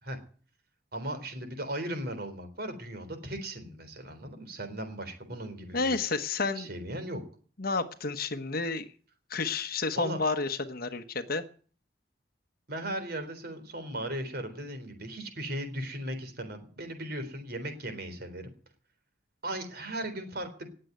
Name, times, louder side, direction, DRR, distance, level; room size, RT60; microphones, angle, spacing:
voice 1, 0.9-6.0 6.6-7.2 10.0-10.2 12.7-18.5 19.4-20.7, right 1 dB, 60° right, 8 dB, 3.9 m, -37 dB
voice 2, 5.7-6.7 7.6-8.9 9.3-11.4, left 3 dB, 55° left, 9 dB, 1.1 m, -30 dB
19.0 x 7.8 x 9.3 m, 0.43 s
head